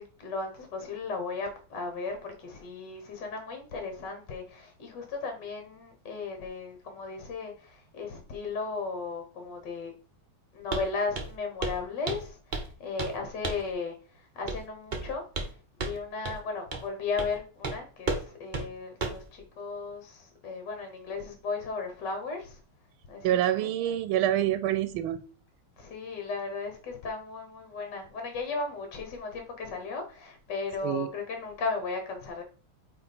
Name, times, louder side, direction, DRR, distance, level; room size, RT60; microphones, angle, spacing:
voice 1, 0.0-9.9 10.5-15.2 15.8-22.6 23.1-23.7 25.8-32.4, left 4 dB, 60° left, 1.7 m, -36 dB
Walk footsteps, 10.7-10.9 11.1-11.4 11.6-11.8 12.1-12.7 13.0-13.2 13.4-13.7 14.5-14.6 14.9-15.5 15.8-16.0 16.2-16.4 16.7-16.9 17.2-17.3 17.6-17.8 18.1-18.2 18.5-18.7 19.0-19.2, right 3 dB, 40° right, 0.7 m, -32 dB
voice 2, 23.2-25.2 30.8-31.1, right 12 dB, 80° right, 1.4 m, -26 dB
8.8 x 3.5 x 4.2 m
omnidirectional pair, 2.3 m